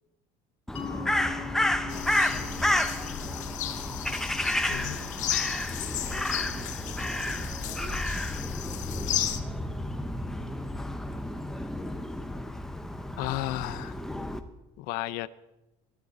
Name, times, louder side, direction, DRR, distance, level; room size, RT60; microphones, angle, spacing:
Crow, 0.7-14.4, left 1 dB, 5° left, 0.8 m, -31 dB
Mallet percussion, 0.8-6.1, left 7 dB, 35° left, 1.6 m, -43 dB
voice 1, 0.9-4.1 4.7-5.4 6.1-8.1 8.9-10.7, right 4 dB, 35° right, 4 dB, 1.7 m, -49 dB
sound 1, 1.9-9.4, left 11 dB, 50° left, 1.2 m, -34 dB
voice 2, 4.7-5.0 13.2-14.0 14.8-15.3, left 17 dB, 70° left, 17 dB, 0.6 m, -33 dB
20.5 x 12.5 x 4.2 m, 0.97 s
cardioid pair, 155°, 16 cm